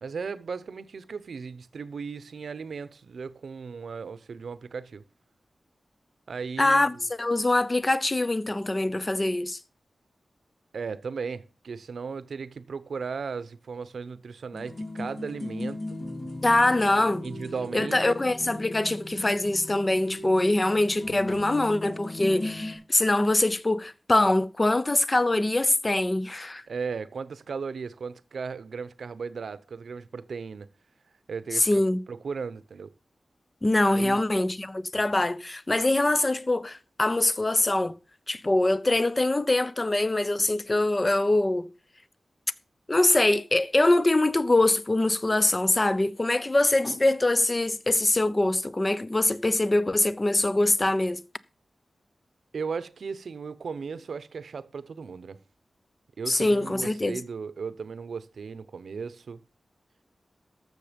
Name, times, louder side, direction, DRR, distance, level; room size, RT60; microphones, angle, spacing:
voice 1, 0.0-5.0 6.3-7.1 10.7-16.0 17.2-18.2 26.7-30.7 31.3-32.9 33.9-34.3 52.5-55.4 56.2-59.4, right 5 dB, 85° right, 0.7 m, -36 dB
voice 2, 6.6-9.6 16.4-17.2 17.7-26.6 31.5-32.0 33.6-38.0 38.3-41.7 42.9-51.2 56.3-57.2, left 2 dB, 25° left, 0.6 m, -23 dB
sound 1, 14.5-22.8, left 2 dB, 65° left, 4.5 m, -37 dB
13.5 x 6.7 x 5.1 m
wide cardioid pair, 125°, 0 cm